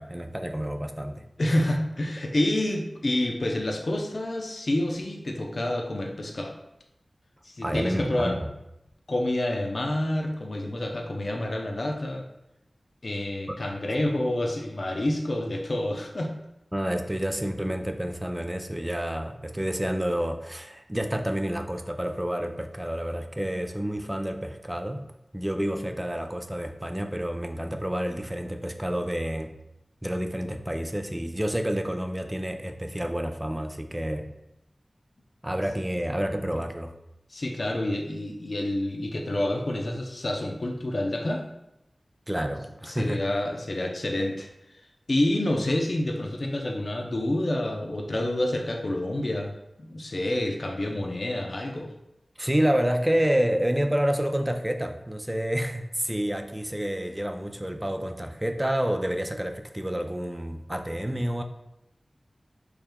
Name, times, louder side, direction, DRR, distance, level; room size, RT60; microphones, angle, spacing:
voice 1, 0.0-1.8 7.6-8.5 16.7-25.1 25.3-29.5 30.0-34.3 35.4-36.9 42.3-43.3 52.4-61.4, equal, 15° right, 6 dB, 0.4 m, -29 dB
voice 2, 1.4-6.5 7.4-8.3 9.1-12.3 13.0-16.3 37.3-41.4 42.9-44.5 45.1-49.5 49.8-51.9, left 1 dB, 60° left, 1 dB, 0.5 m, -28 dB
4.6 x 3.4 x 2.2 m, 0.86 s
wide cardioid pair, 45°, 0 cm